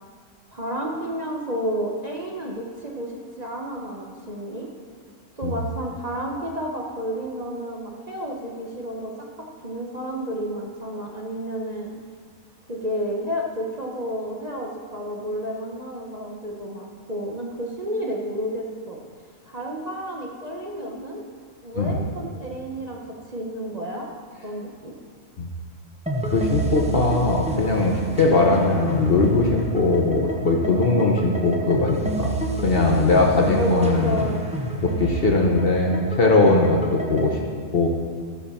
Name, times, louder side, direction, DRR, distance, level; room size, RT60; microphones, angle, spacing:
voice 1, 0.5-4.7 5.4-11.9 12.7-19.0 19.4-21.2 21.6-24.1 24.4-24.9 33.5-34.4, equal, 30° right, -2 dB, 1.1 m, -31 dB
sound 1, 26.1-37.3, right 2 dB, 5° right, 0.7 m, -30 dB
voice 2, 26.2-34.2 34.8-37.4 37.7-37.9, left 3 dB, 45° left, 0 dB, 1.1 m, -20 dB
13.5 x 5.0 x 7.0 m, 2.1 s
omnidirectional pair, 1.5 m